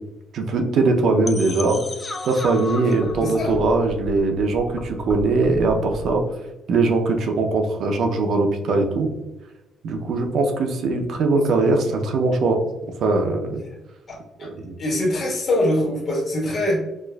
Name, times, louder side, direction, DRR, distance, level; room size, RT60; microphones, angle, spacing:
voice 1, 0.3-1.8 2.2-6.2 6.7-9.1 9.8-12.6 13.0-13.6 14.4-14.7, right 3 dB, 60° right, 4 dB, 0.5 m, -21 dB
sound 1, 1.2-6.2, left 2 dB, 20° left, 0.4 m, -34 dB
voice 2, 3.2-3.5 14.1-14.5 14.8-16.8, left 1 dB, 45° left, -3 dB, 1.2 m, -23 dB
4.3 x 2.4 x 2.2 m, 0.99 s
cardioid pair, 145°, 0 cm